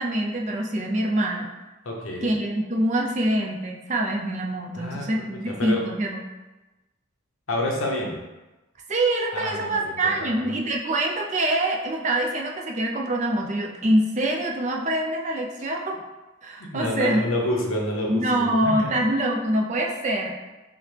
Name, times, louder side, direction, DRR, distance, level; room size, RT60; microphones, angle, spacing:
voice 1, 0.0-1.5 2.2-6.3 8.9-16.0 16.4-17.3 18.1-20.4, right 1 dB, 35° right, 0 dB, 0.5 m, -25 dB
voice 2, 1.8-2.3 4.7-5.1 5.4-5.8 7.5-8.2 9.3-10.5 16.6-18.9, left 1 dB, 90° left, -1 dB, 0.8 m, -28 dB
5.6 x 2.1 x 3.2 m, 1.1 s
head